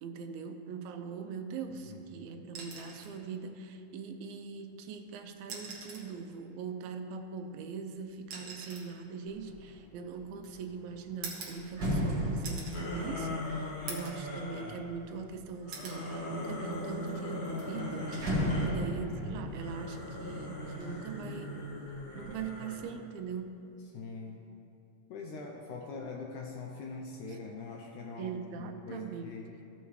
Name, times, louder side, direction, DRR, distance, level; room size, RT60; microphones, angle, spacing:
voice 1, 0.0-18.2 18.7-21.6 22.2-23.7 28.2-29.4, right 6 dB, 85° right, 6 dB, 2.5 m, -41 dB
voice 2, 1.9-2.4 18.5-18.8 23.9-24.4 25.1-28.3 28.6-29.5, left 4 dB, 75° left, 0 dB, 1.8 m, -43 dB
sound 1, 2.5-3.2 4.6-4.7 5.4-6.2 7.3-10.4 11.2-12.1 12.4-12.9 13.3-13.4 13.9-14.3 14.7-15.3 15.7-16.0 17.5-17.7, right 4 dB, 60° right, 1.2 m, -45 dB
sound 2, 9.3-9.7 10.1-15.4 16.0-16.7 17.1-17.2 17.4-21.4 21.8-22.4, equal, 45° right, 1.7 m, -36 dB
sound 3, 12.7-14.8 15.6-18.8 19.4-22.9, left 1 dB, 50° left, 1.6 m, -39 dB
15.0 x 6.8 x 3.1 m, 2.8 s
omnidirectional pair, 4.1 m